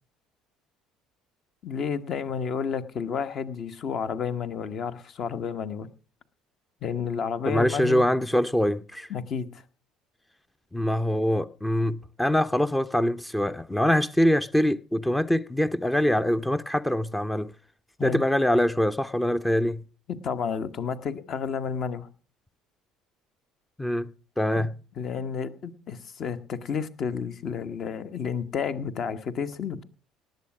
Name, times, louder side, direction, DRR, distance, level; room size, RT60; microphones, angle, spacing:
voice 1, 1.6-5.9 6.8-8.0 9.1-9.6 18.0-18.2 20.2-22.1 24.5-24.7 25.0-29.8, left 6 dB, 45° left, 1.2 m, -31 dB
voice 2, 7.5-9.1 10.7-17.5 18.0-19.8 23.8-24.1 24.4-24.7, left 1 dB, 10° left, 0.6 m, -24 dB
19.0 x 7.9 x 6.2 m
figure-of-eight pair, 55°, 0 cm